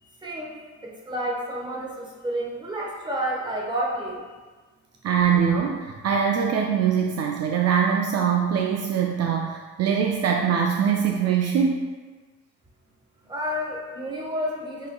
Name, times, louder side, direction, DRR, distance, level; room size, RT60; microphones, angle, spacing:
voice 1, 0.2-4.3 13.3-14.9, equal, 15° right, -3 dB, 1.1 m, -30 dB
voice 2, 5.0-11.8, right 7 dB, 55° right, 1 dB, 0.4 m, -23 dB
6.5 x 3.0 x 2.2 m, 1.3 s
cardioid pair, 90°, 30 cm